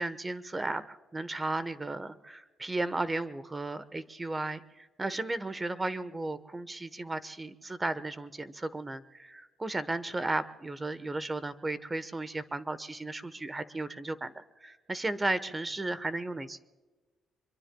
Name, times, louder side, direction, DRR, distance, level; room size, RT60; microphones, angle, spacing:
voice 1, 0.0-16.6, right 2 dB, 20° right, 13 dB, 1.1 m, -35 dB
26.0 x 23.0 x 2.3 m, 1.2 s
cardioid pair, 90°, 0 cm